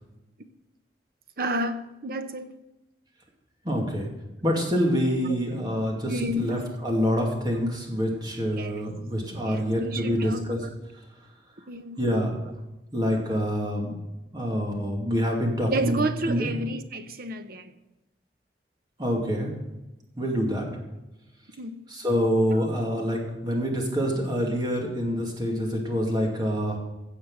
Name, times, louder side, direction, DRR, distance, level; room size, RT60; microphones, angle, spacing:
voice 1, 1.4-2.5 5.3-5.4 6.1-6.7 8.5-8.8 9.4-10.6 11.7-12.1 15.7-17.7 21.6-21.8 22.5-22.6, right 1 dB, 55° right, 9 dB, 0.9 m, -31 dB
voice 2, 3.6-4.1 4.4-10.6 12.0-12.3 12.9-13.9 14.3-16.5 19.0-19.5 20.2-20.7 21.9-26.8, equal, 25° right, -1 dB, 2.5 m, -26 dB
16.0 x 6.5 x 5.7 m, 1.0 s
head